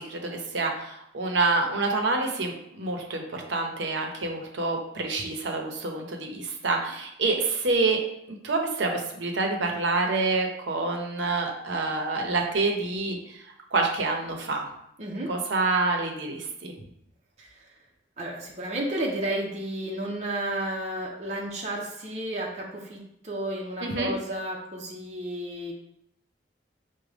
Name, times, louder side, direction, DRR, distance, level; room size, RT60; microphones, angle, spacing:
voice 1, 0.0-8.0 8.3-13.4 13.7-14.7 15.3-16.7 23.8-24.1, right 3 dB, 80° right, 2 dB, 0.7 m, -27 dB
voice 2, 15.0-15.3 17.4-17.7 18.2-25.7, right 1 dB, 40° right, -3 dB, 0.6 m, -32 dB
4.9 x 2.1 x 3.3 m, 0.77 s
head